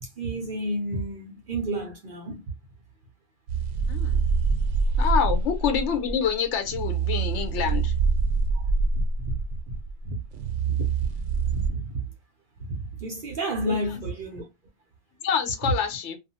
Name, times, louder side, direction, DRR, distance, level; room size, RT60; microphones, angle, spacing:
voice 1, 0.0-2.5 4.5-4.6 8.5-8.7 8.9-9.3 9.7-9.8 10.0-10.2 10.6-11.1 11.4-12.0 12.6-14.5 15.6-15.7, right 1 dB, 55° right, 0.7 m, -31 dB
sound 1, 3.5-11.7, right 4 dB, 90° right, 0.9 m, -25 dB
voice 2, 3.9-4.2 5.0-7.9 13.7-13.8 15.2-16.2, left 7 dB, 80° left, 1.0 m, -26 dB
2.6 x 2.4 x 2.6 m
omnidirectional pair, 1.2 m